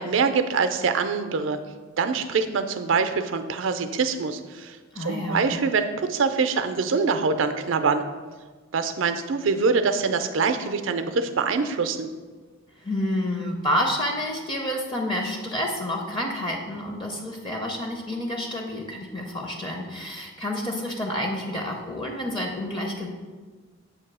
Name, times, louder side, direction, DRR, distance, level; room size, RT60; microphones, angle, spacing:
voice 1, 0.0-1.6 2.0-8.0 8.7-12.1, right 5 dB, 70° right, 8 dB, 0.4 m, -24 dB
voice 2, 4.9-5.5 12.8-23.1, left 1 dB, 25° left, 1 dB, 0.6 m, -29 dB
7.7 x 2.7 x 6.0 m, 1.4 s
head